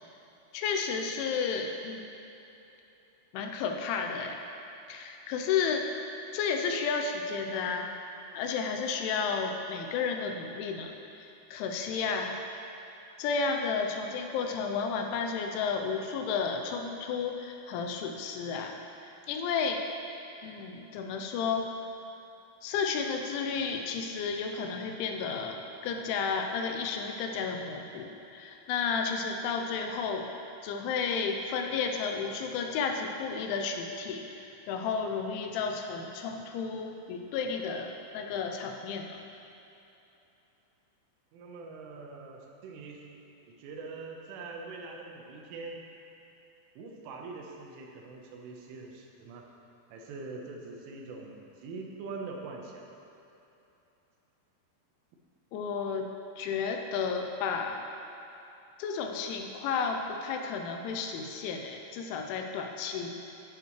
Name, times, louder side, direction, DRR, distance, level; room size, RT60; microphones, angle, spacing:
voice 1, 0.5-2.1 3.3-4.4 4.9-5.9 6.3-7.9 8.3-12.4 13.2-19.8 20.4-21.7 22.6-30.3 30.6-39.2 55.5-56.1 56.4-57.8 58.8-63.2, left 5 dB, 85° left, 3 dB, 3.0 m, -32 dB
voice 2, 41.3-43.1 43.5-45.9 46.8-49.5 49.9-52.9 56.7-56.8, right 3 dB, 85° right, 0 dB, 3.6 m, -43 dB
12.0 x 11.0 x 3.2 m, 2.9 s
omnidirectional pair, 5.6 m